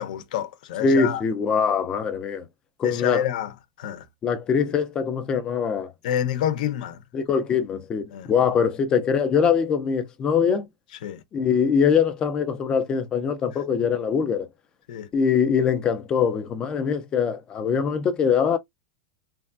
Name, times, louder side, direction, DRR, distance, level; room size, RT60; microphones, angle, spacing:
voice 1, 0.0-1.2 2.8-3.5 3.8-4.0 6.0-7.0 8.1-8.3 11.0-11.2 14.9-15.1, left 10 dB, 65° left, 0.6 m, -28 dB
voice 2, 0.8-2.5 2.8-3.3 4.2-5.9 7.1-10.7 11.3-14.5 15.1-18.6, left 6 dB, 20° left, 0.3 m, -23 dB
3.2 x 2.2 x 2.3 m
supercardioid pair, 175°, 5 cm